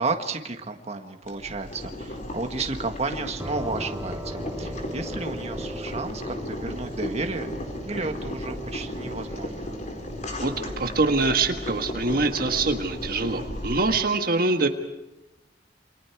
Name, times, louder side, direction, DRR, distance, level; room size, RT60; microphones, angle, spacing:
voice 1, 0.0-7.5 7.9-9.7, right 3 dB, 40° right, 5 dB, 1.7 m, -32 dB
Boiling, 1.2-14.0, left 1 dB, 45° left, 4.4 m, -35 dB
sound 1, 3.4-12.9, right 1 dB, 10° right, 1.0 m, -40 dB
voice 2, 10.4-14.7, right 3 dB, 55° right, 5 dB, 1.6 m, -24 dB
28.5 x 25.5 x 4.7 m, 0.97 s
head